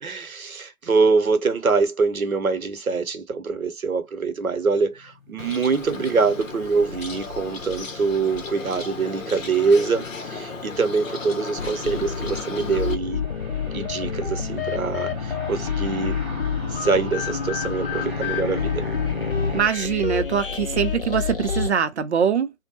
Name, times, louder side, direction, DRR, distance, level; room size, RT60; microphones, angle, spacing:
voice 1, 0.0-13.2 13.7-16.2 16.7-18.9, right 4 dB, 80° right, 0.8 m, -24 dB
sound 1, 5.0-19.6, left 3 dB, ahead, 0.9 m, -36 dB
Bird, 5.4-12.9, left 4 dB, 65° left, 0.9 m, -35 dB
sound 2, 11.6-21.7, left 6 dB, 45° left, 0.5 m, -28 dB
voice 2, 19.5-22.5, right 7 dB, 55° right, 0.6 m, -23 dB
2.6 x 2.1 x 2.8 m
figure-of-eight pair, 140°, 42 cm